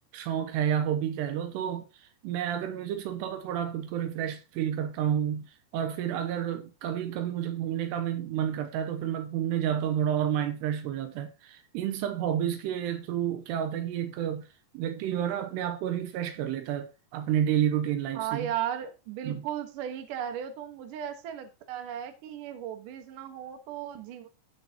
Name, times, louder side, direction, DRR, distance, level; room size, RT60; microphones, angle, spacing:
voice 1, 0.1-14.5 14.7-18.5 19.2-19.5, right 10 dB, 85° right, 3.0 m, -30 dB
voice 2, 18.1-24.3, right 10 dB, 60° right, 2.6 m, -36 dB
16.5 x 6.7 x 2.9 m
omnidirectional pair, 4.9 m